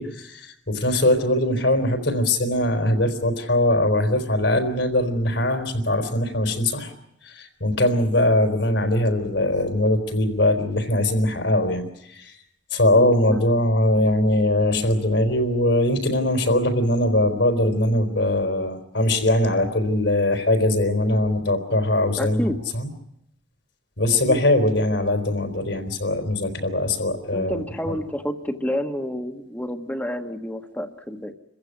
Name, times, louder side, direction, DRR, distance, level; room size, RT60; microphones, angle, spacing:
voice 1, 0.0-6.9 7.2-12.3 12.7-22.9 24.0-28.0, left 1 dB, 75° left, 7 dB, 4.1 m, -21 dB
voice 2, 12.9-13.4 16.4-16.5 22.2-22.6 24.1-24.4 27.3-31.3, equal, 10° left, 5 dB, 1.3 m, -29 dB
27.5 x 15.5 x 9.6 m, 0.78 s
head